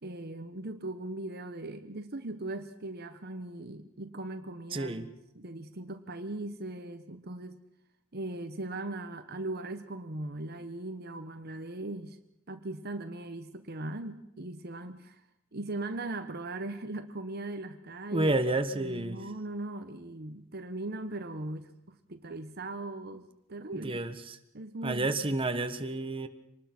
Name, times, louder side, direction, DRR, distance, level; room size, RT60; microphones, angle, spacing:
voice 1, 0.0-7.6 8.1-12.2 12.5-15.2 15.5-18.4 18.7-24.0 24.5-25.1, right 2 dB, 50° right, 8 dB, 1.1 m, -39 dB
voice 2, 4.7-5.1 18.1-19.2 23.7-24.1 24.8-26.3, right 2 dB, 25° right, 7 dB, 1.4 m, -30 dB
25.5 x 20.0 x 6.1 m, 0.83 s
head